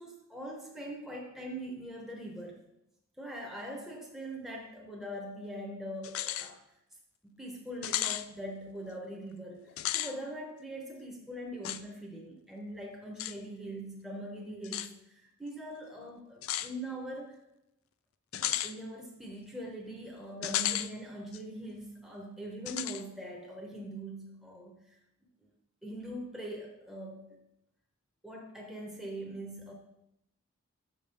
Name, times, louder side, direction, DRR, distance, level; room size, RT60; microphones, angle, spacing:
voice 1, 0.0-2.6 3.2-6.6 7.2-17.4 18.3-25.0 25.4-25.5 25.8-27.4 28.2-29.7, right 1 dB, ahead, -1 dB, 0.8 m, -42 dB
sound 1, 6.0-6.5 6.9-7.0 7.8-8.2 9.7-10.1 11.6-11.8 13.2-13.3 14.6-14.9 16.4-16.7 18.3-18.7 20.4-20.9 21.3-21.4 22.7-23.0, left 13 dB, 75° left, 0.4 m, -33 dB
6.0 x 5.3 x 4.2 m, 0.83 s
head